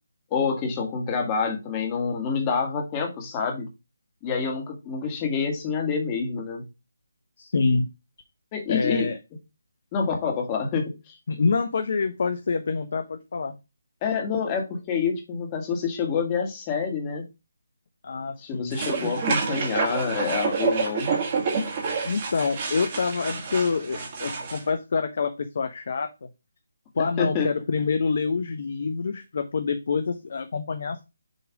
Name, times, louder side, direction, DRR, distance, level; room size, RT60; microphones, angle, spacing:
voice 1, 0.3-3.7 4.2-6.7 8.5-9.1 9.9-11.1 14.0-17.3 18.4-21.1 27.2-27.5, left 5 dB, 20° left, 3 dB, 1.6 m, -27 dB
voice 2, 7.4-7.9 8.7-9.2 11.3-13.5 18.0-18.8 22.0-26.3 26.9-31.0, left 4 dB, 50° left, 8 dB, 0.7 m, -26 dB
sound 1, 18.7-24.6, right 5 dB, 35° right, 1.7 m, -28 dB
6.6 x 3.1 x 4.8 m, 0.26 s
figure-of-eight pair, 155°, 0 cm